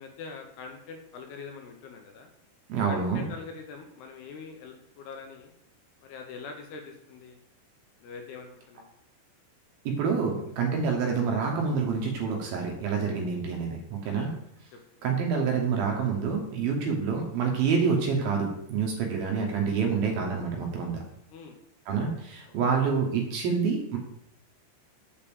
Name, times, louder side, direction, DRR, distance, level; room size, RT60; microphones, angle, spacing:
voice 1, 0.0-2.3 2.9-5.5 6.0-7.4 8.0-8.9 14.1-14.3 21.3-21.6 22.7-22.8, left 5 dB, 75° left, 4 dB, 2.7 m, -43 dB
voice 2, 2.7-3.3 9.9-14.3 15.0-21.0 21.9-24.0, right 5 dB, 65° right, 1 dB, 2.6 m, -27 dB
7.0 x 5.2 x 7.0 m, 0.76 s
omnidirectional pair, 5.1 m